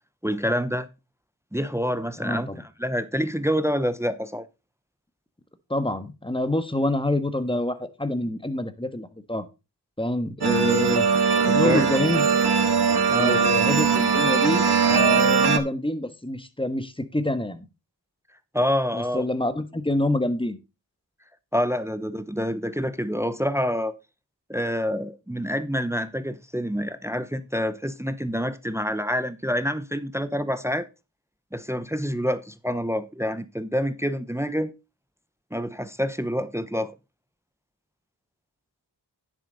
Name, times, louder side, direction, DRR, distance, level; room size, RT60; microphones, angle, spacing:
voice 1, 0.2-0.9 1.5-4.5 11.5-11.9 13.1-13.4 18.5-19.2 21.5-23.9 24.5-30.9 31.5-34.7 35.5-36.9, equal, 5° right, 0.8 m, -27 dB
voice 2, 2.2-2.6 5.7-9.5 10.0-11.1 11.5-12.3 13.2-17.7 18.9-20.6, left 1 dB, 10° left, 1.3 m, -26 dB
sound 1, 10.4-15.6, right 5 dB, 65° right, 1.4 m, -20 dB
10.0 x 7.7 x 4.0 m
wide cardioid pair, 55°, 42 cm